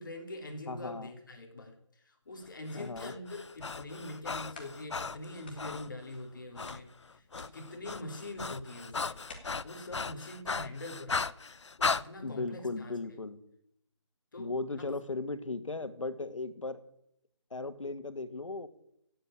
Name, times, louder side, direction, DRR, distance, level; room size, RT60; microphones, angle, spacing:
voice 1, 0.0-1.7 2.0-6.9 7.1-11.3 11.8-13.0 14.3-14.5 14.8-14.9, left 1 dB, 40° left, 3 dB, 2.9 m, -44 dB
voice 2, 0.7-1.2 2.7-3.1 12.2-13.4 14.4-16.8 17.5-18.7, left 3 dB, 90° left, 11 dB, 1.9 m, -37 dB
sound 1, 2.3-3.1 3.7-3.8 4.2-4.3 4.5-5.1 5.4-6.4 6.7-9.4, left 4 dB, 20° left, 1.8 m, -54 dB
Breathing, 2.7-5.9 6.6-6.8 7.1-12.0, left 4 dB, 65° left, 0.7 m, -36 dB
16.5 x 7.8 x 8.7 m, 0.74 s
figure-of-eight pair, 175°, 16 cm